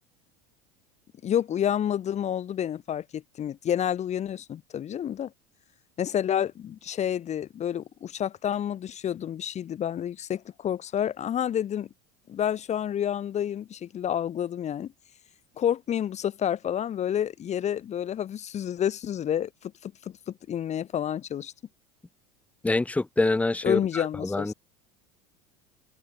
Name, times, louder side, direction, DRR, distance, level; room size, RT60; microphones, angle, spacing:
voice 1, 1.2-5.3 6.0-11.9 12.3-14.9 15.6-21.5 23.6-24.5, left 10 dB, 35° left, 1.3 m, -29 dB
voice 2, 22.6-24.5, left 2 dB, 5° left, 0.6 m, -26 dB
open air
hypercardioid pair, 90°, 19 cm